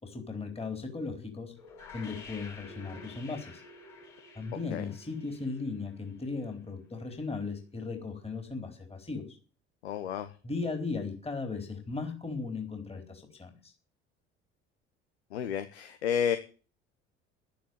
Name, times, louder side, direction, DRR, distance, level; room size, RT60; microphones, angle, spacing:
voice 1, 0.0-1.5 1.9-3.6 4.4-9.4 10.4-13.7, left 4 dB, 15° left, 4 dB, 4.0 m, -37 dB
sound 1, 1.6-6.5, left 3 dB, 55° left, 7.4 m, -50 dB
voice 2, 9.8-10.3 15.3-16.4, left 8 dB, 75° left, 10 dB, 1.1 m, -31 dB
12.0 x 10.5 x 7.7 m, 0.38 s
figure-of-eight pair, 55°, 33 cm